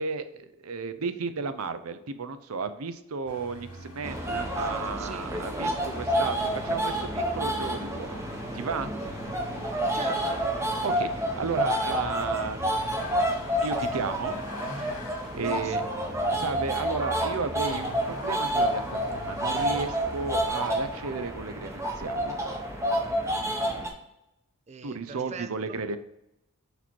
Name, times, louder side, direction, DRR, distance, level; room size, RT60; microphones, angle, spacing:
voice 1, 0.0-6.4 6.6-8.2 8.5-8.9 10.8-12.7 13.6-14.4 15.3-15.8 16.3-22.4 24.8-26.0, right 4 dB, 80° right, 0.6 m, -33 dB
Vehicle, 3.3-20.5, left 1 dB, 85° left, 2.2 m, -43 dB
sound 1, 4.0-23.9, right 1 dB, 15° right, 0.8 m, -29 dB
voice 2, 5.0-5.3 9.0-9.5 9.9-10.5 15.3-16.0 24.7-25.8, right 4 dB, 30° right, 0.4 m, -42 dB
6.8 x 4.3 x 4.5 m
head